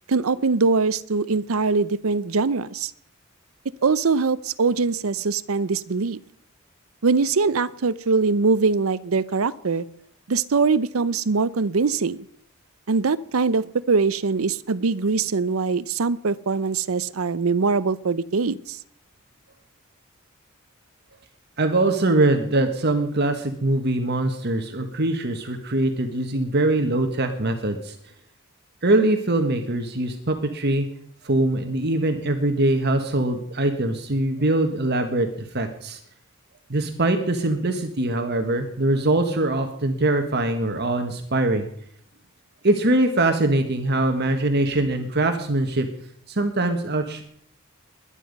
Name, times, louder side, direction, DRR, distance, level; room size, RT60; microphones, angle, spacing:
voice 1, 0.1-2.9 3.8-6.2 7.0-9.9 10.3-12.2 12.9-18.8, right 4 dB, 90° right, 17 dB, 0.6 m, -22 dB
voice 2, 21.6-27.9 28.8-30.8 31.2-36.0 36.7-41.7 42.6-45.9 46.3-47.2, right 2 dB, 50° right, 6 dB, 1.5 m, -22 dB
21.5 x 10.0 x 5.3 m, 0.65 s
head